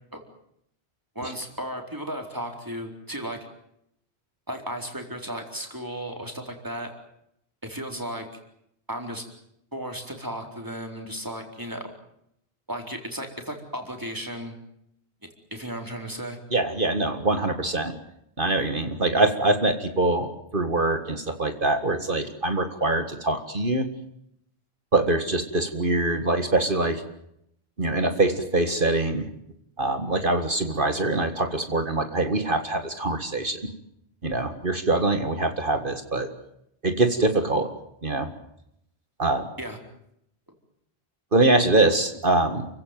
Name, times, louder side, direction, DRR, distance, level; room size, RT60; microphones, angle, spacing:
voice 1, 1.1-3.4 4.5-6.9 7.6-8.3 8.9-9.3 9.7-11.9 12.7-14.5 15.5-16.4 39.6-39.8, equal, 20° right, 3 dB, 4.2 m, -34 dB
voice 2, 16.5-18.0 18.4-23.9 24.9-27.0 27.8-29.3 29.8-33.6 34.2-36.3 36.8-37.7 38.0-38.3 39.2-39.5 41.3-42.7, right 2 dB, 50° right, 7 dB, 2.0 m, -24 dB
29.5 x 16.0 x 9.3 m, 0.77 s
omnidirectional pair, 1.1 m